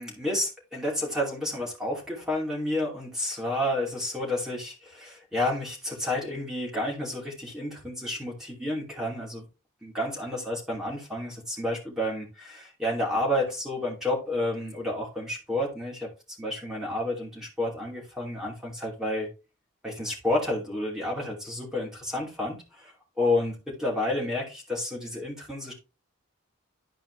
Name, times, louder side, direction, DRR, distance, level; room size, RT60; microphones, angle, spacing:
voice 1, 0.0-9.4 9.8-16.1 16.4-19.3 19.8-25.7, left 1 dB, ahead, -3 dB, 2.7 m, -30 dB
11.5 x 4.9 x 3.3 m, 0.29 s
head